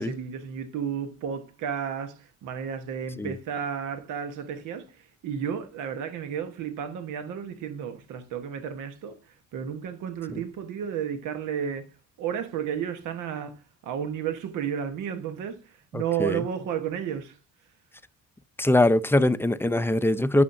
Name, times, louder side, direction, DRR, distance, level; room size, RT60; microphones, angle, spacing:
voice 1, 0.0-11.9 12.2-17.4, right 8 dB, 85° right, 1.1 m, -32 dB
voice 2, 18.6-20.4, left 1 dB, 10° left, 0.5 m, -22 dB
8.5 x 6.3 x 2.6 m
cardioid pair, 90°, 30 cm